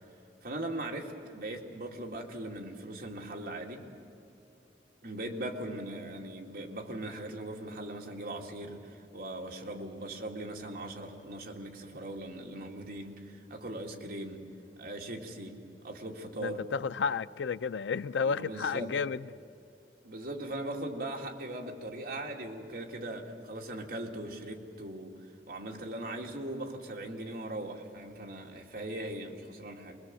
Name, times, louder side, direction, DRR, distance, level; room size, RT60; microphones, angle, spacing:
voice 1, 0.4-3.8 5.0-14.5 14.8-16.6 18.2-18.9 20.0-25.2 25.5-30.0, right 1 dB, 55° right, 2.4 m, -40 dB
voice 2, 16.4-19.3, left 5 dB, 85° left, 0.5 m, -32 dB
24.5 x 21.5 x 7.6 m
head